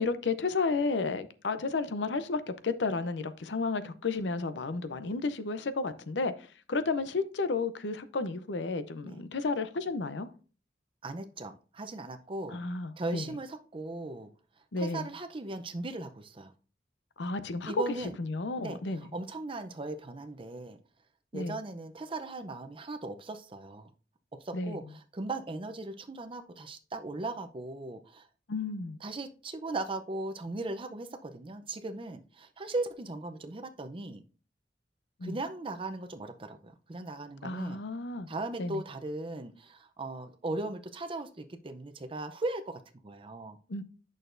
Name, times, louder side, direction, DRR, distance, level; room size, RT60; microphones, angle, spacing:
voice 1, 0.0-10.3 12.5-13.2 14.7-15.1 17.2-17.7 18.2-19.0 21.3-21.5 24.5-24.8 28.5-29.0 35.2-35.4 37.4-38.3 38.6-38.8 43.7-43.8, left 3 dB, 75° left, 0.6 m, -32 dB
voice 2, 11.0-12.6 13.0-14.3 14.8-16.5 17.7-18.2 18.6-20.8 21.3-23.9 24.3-28.3 29.0-34.2 35.2-37.8 38.3-43.6, right 2 dB, 30° right, 0.6 m, -38 dB
8.8 x 6.3 x 2.6 m
head